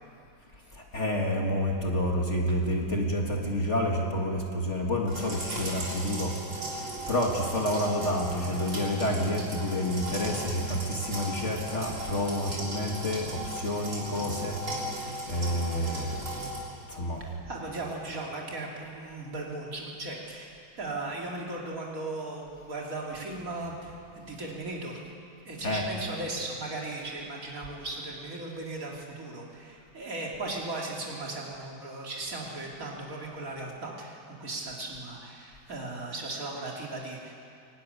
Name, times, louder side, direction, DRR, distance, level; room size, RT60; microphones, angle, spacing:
voice 1, 0.9-6.3 7.1-13.2 13.5-14.6 15.3-16.2 16.9-17.2 25.6-25.9, left 1 dB, 35° left, 0 dB, 2.1 m, -29 dB
sound 1, 5.1-16.6, right 1 dB, 65° right, 4.5 m, -37 dB
voice 2, 17.3-25.0 25.4-37.3, right 2 dB, 45° right, -2 dB, 3.3 m, -37 dB
23.5 x 12.0 x 9.8 m, 2.4 s
omnidirectional pair, 2.2 m